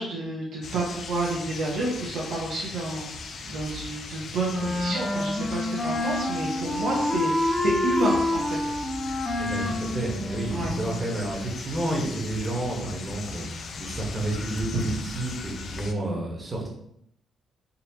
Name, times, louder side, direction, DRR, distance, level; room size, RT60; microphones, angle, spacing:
voice 1, 0.0-8.7 10.5-10.7, right 2 dB, 80° right, -5 dB, 0.8 m, -30 dB
sound 1, 0.6-15.9, left 4 dB, 55° left, 0.4 m, -38 dB
Wind instrument woodwind instrument, 4.5-11.1, left 1 dB, 20° left, 0.7 m, -28 dB
voice 2, 9.4-13.4 13.8-16.7, right 1 dB, 25° right, -2 dB, 1.1 m, -30 dB
3.8 x 2.7 x 2.8 m, 0.74 s
cardioid pair, 105°, 0 cm